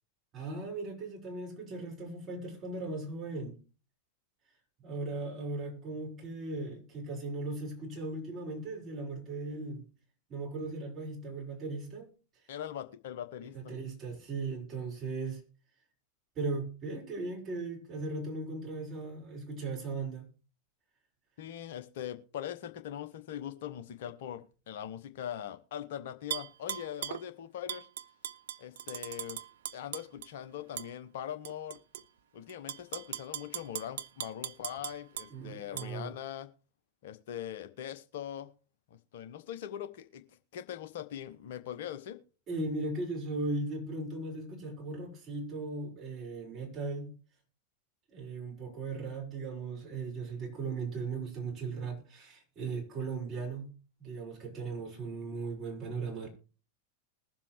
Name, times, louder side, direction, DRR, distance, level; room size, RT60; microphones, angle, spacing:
voice 1, 0.3-3.6 4.8-9.8 10.3-12.1 13.5-15.4 16.4-20.3 35.3-36.1 42.5-47.1 48.1-53.7 54.0-56.3, right 3 dB, 30° right, 5.6 m, -37 dB
voice 2, 12.5-13.7 21.4-27.9 28.6-29.4 29.7-31.8 32.3-36.5 37.0-38.5 38.9-40.2 40.5-42.2, left 10 dB, 55° left, 1.1 m, -41 dB
Tap / Glass, 26.3-27.2 27.7-30.3 30.8-30.9 31.4-32.0 32.5-35.3 35.8-35.9, right 10 dB, 60° right, 0.5 m, -39 dB
21.0 x 7.5 x 3.2 m
figure-of-eight pair, 90°, 0 cm